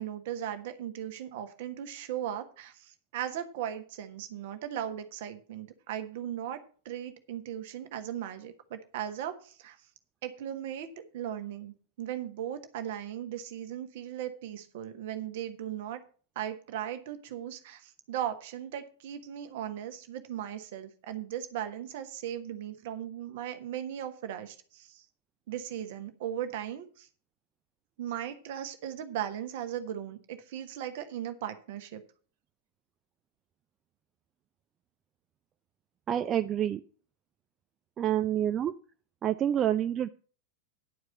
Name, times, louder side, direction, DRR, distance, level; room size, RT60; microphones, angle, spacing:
voice 1, 0.0-6.6 6.8-9.8 10.2-16.0 16.3-25.0 25.5-27.1 28.0-32.0, right 10 dB, 55° right, 8 dB, 1.4 m, -37 dB
voice 2, 36.1-36.8 38.0-38.7 39.2-40.1, right 10 dB, 25° right, 10 dB, 0.5 m, -27 dB
11.0 x 4.8 x 7.8 m, 0.40 s
figure-of-eight pair, 90°, 0 cm